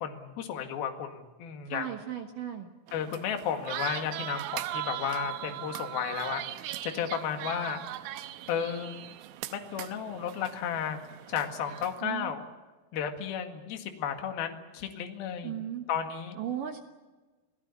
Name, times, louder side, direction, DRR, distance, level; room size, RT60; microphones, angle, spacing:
voice 1, 0.0-1.9 2.9-6.4 6.8-7.8 8.5-9.0 9.5-11.0 11.3-12.4 12.9-15.5 15.9-16.4, left 8 dB, 60° left, 5 dB, 3.5 m, -33 dB
voice 2, 1.7-2.7 12.0-12.3 15.4-15.9 16.4-16.8, right 10 dB, 65° right, 5 dB, 2.2 m, -36 dB
sound 1, 2.9-12.0, right 13 dB, 90° right, 3.4 m, -39 dB
28.5 x 17.5 x 8.5 m, 1.2 s
omnidirectional pair, 5.4 m